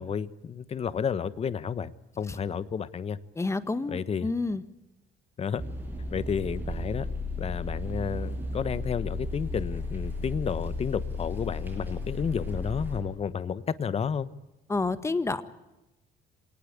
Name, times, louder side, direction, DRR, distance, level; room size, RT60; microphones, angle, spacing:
voice 1, 0.0-1.9 2.2-3.2 3.9-4.3 5.4-5.6 6.1-7.1 7.4-14.3, left 7 dB, 35° left, 15 dB, 1.2 m, -31 dB
voice 2, 3.4-4.6 14.7-15.4, left 3 dB, 15° left, 13 dB, 1.6 m, -29 dB
sound 1, 5.6-13.0, left 2 dB, 10° right, 7.1 m, -34 dB
26.5 x 19.0 x 8.5 m, 0.98 s
cardioid pair, 110°, 17 cm